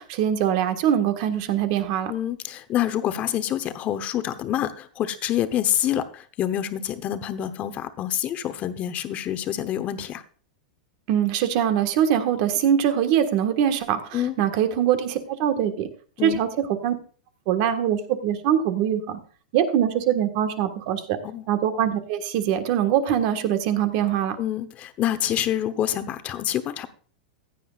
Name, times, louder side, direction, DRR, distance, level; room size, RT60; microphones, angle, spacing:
voice 1, 0.0-2.1 11.1-15.9 16.2-16.5 16.8-16.9 17.5-19.2 19.5-21.2 21.5-24.4, right 9 dB, 50° right, 8 dB, 1.6 m, -23 dB
voice 2, 2.1-10.2 14.1-14.4 16.2-16.4 21.2-21.4 24.4-26.9, left 11 dB, 30° left, 10 dB, 1.0 m, -27 dB
15.5 x 9.9 x 2.5 m, 0.42 s
supercardioid pair, 140°, 5 cm